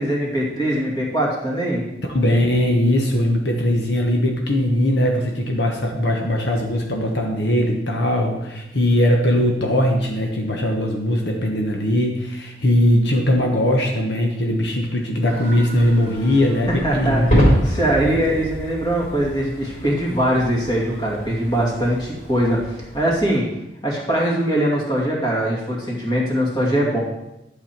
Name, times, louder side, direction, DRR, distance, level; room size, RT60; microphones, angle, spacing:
voice 1, 0.0-1.9 16.7-23.5 23.8-27.0, right 1 dB, 25° left, -3 dB, 2.4 m, -22 dB
voice 2, 2.1-17.8, left 1 dB, 70° left, 1 dB, 1.3 m, -20 dB
sound 1, 15.3-23.2, right 1 dB, 40° left, 3.3 m, -26 dB
11.5 x 7.4 x 4.5 m, 0.90 s
head